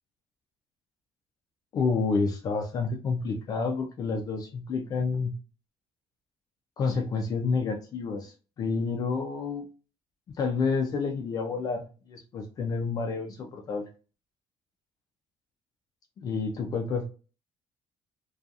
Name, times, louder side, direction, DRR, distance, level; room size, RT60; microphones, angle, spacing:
voice 1, 1.7-5.3 6.8-8.3 8.6-9.6 10.4-11.8 12.1-13.8 16.2-17.0, left 4 dB, 40° left, 2 dB, 0.4 m, -29 dB
2.7 x 2.3 x 2.3 m, 0.35 s
cardioid pair, 150°, 10 cm